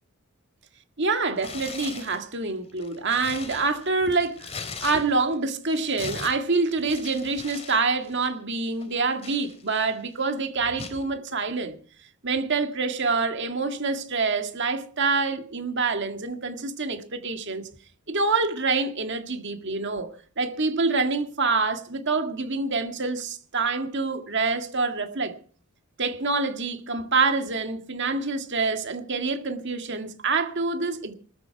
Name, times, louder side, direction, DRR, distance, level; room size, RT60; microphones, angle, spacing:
voice 1, 1.0-11.8 12.2-17.7 18.1-20.1 20.4-25.3 26.0-31.1, right 4 dB, 55° right, 1.9 m, -26 dB
Tearing, 1.4-2.2 2.7-5.3 5.6-7.8 8.0-8.3 8.8-10.0 10.8-11.0, left 4 dB, 30° left, 2.8 m, -39 dB
19.5 x 13.5 x 4.7 m
head